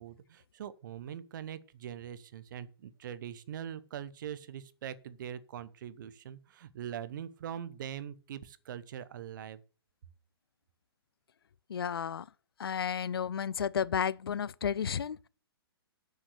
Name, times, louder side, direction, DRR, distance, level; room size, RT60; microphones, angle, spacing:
voice 1, 0.0-9.6, right 9 dB, 50° right, 1.0 m, -42 dB
voice 2, 11.7-12.3 12.6-15.3, left 7 dB, 65° left, 0.5 m, -32 dB
7.4 x 6.7 x 7.9 m
figure-of-eight pair, 120°, 13 cm